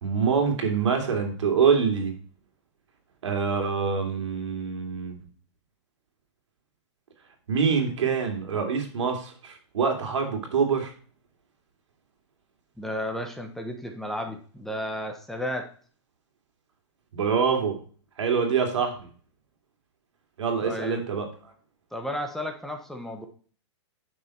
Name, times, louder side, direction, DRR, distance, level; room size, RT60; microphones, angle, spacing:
voice 1, 0.0-2.1 3.2-5.2 7.5-10.9 17.1-17.8 18.2-19.1 20.4-21.3, right 6 dB, 80° right, 4 dB, 3.0 m, -25 dB
voice 2, 12.8-15.7 20.6-21.0 21.9-23.3, left 1 dB, ahead, 3 dB, 1.0 m, -33 dB
9.4 x 6.4 x 4.5 m, 0.42 s
hypercardioid pair, 145°, 15 cm